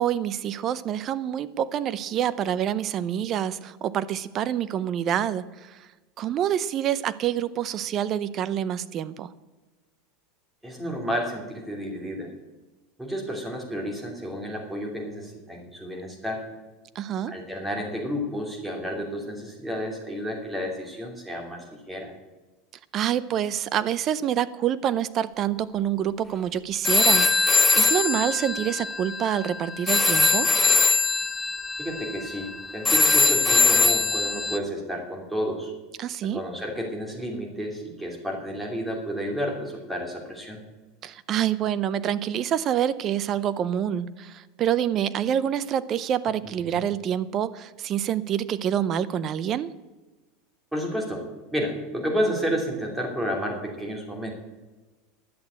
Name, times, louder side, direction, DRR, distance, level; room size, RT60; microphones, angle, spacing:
voice 1, 0.0-5.8 6.2-9.3 17.0-17.3 22.9-30.5 36.0-36.4 41.0-49.7, right 10 dB, 35° right, 16 dB, 0.6 m, -27 dB
voice 2, 10.6-12.3 13.0-16.4 17.3-22.1 31.8-35.7 36.2-40.6 46.4-46.8 50.7-51.2 51.5-54.3, equal, 5° right, 1 dB, 2.9 m, -31 dB
sound 1, 26.8-34.6, left 3 dB, 10° left, 0.7 m, -22 dB
11.0 x 8.1 x 8.4 m, 1.2 s
supercardioid pair, 140°, 0 cm